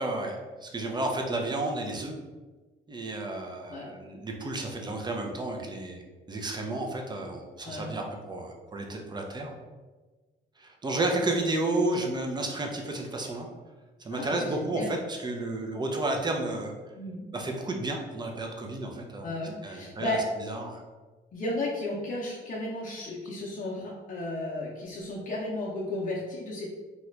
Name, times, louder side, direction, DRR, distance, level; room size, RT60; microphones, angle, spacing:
voice 1, 0.0-2.2 2.9-6.0 6.3-9.5 10.6-13.5 14.0-16.7 17.3-19.3 19.6-20.8, right 2 dB, 20° right, 1 dB, 0.6 m, -32 dB
voice 2, 14.1-14.9 17.0-17.3 19.2-20.2 21.3-26.7, left 1 dB, 45° left, -5 dB, 0.7 m, -34 dB
2.9 x 2.4 x 3.2 m, 1.3 s
cardioid pair, 90°, 20 cm